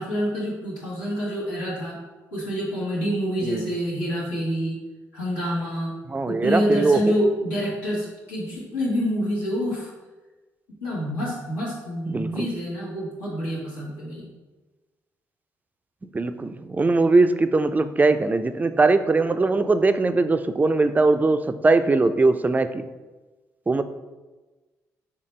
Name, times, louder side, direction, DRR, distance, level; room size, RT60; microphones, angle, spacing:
voice 1, 0.0-2.0 2.3-4.8 5.1-5.9 6.3-9.9 10.8-14.3, equal, 80° left, -8 dB, 1.1 m, -27 dB
voice 2, 6.1-7.1 12.1-12.5 16.1-22.9 23.7-23.8, right 3 dB, 20° right, 10 dB, 0.3 m, -21 dB
3.9 x 3.4 x 3.2 m, 1.2 s
hypercardioid pair, 45°, 8 cm